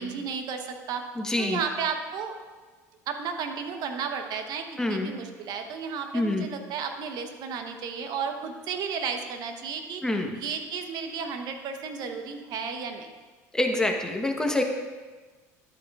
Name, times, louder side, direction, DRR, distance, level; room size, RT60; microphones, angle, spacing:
voice 1, 0.0-1.1 1.4-2.3 3.1-10.0 10.3-13.1, right 6 dB, 60° right, 5 dB, 1.1 m, -33 dB
voice 2, 1.2-1.6 4.8-5.1 6.1-6.5 10.0-10.4 13.5-14.6, left 1 dB, 10° left, 2 dB, 1.2 m, -26 dB
11.5 x 8.2 x 2.5 m, 1.3 s
hypercardioid pair, 85°, 8 cm